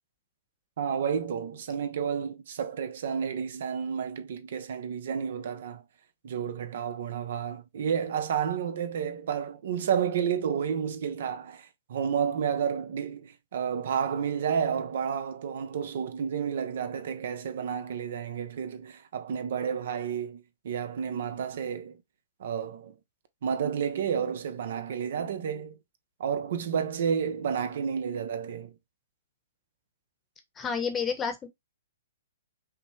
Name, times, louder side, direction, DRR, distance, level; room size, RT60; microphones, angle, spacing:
voice 1, 0.8-5.8 6.2-22.0 22.4-22.9 23.4-25.8 26.2-28.7, right 7 dB, 65° right, 0.7 m, -31 dB
voice 2, 30.6-31.5, left 6 dB, 15° left, 1.0 m, -30 dB
5.6 x 2.2 x 3.2 m
hypercardioid pair, 140°, 0 cm